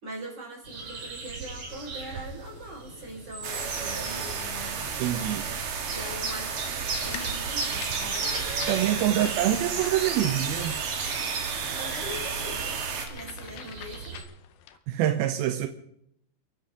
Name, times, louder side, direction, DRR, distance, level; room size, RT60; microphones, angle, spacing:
voice 1, 0.0-4.8 5.9-8.3 11.6-12.7 13.1-14.2, equal, 25° right, 5.7 m, -41 dB
sound 1, 0.6-14.2, right 3 dB, 45° right, 3.1 m, -37 dB
sound 2, 3.4-13.1, right 6 dB, 60° right, 2.7 m, -32 dB
voice 2, 5.0-5.6 8.7-10.8 14.9-15.7, right 12 dB, 80° right, 2.1 m, -26 dB
sound 3, 6.9-14.8, left 10 dB, 75° left, 2.3 m, -45 dB
28.5 x 10.5 x 3.8 m
omnidirectional pair, 5.2 m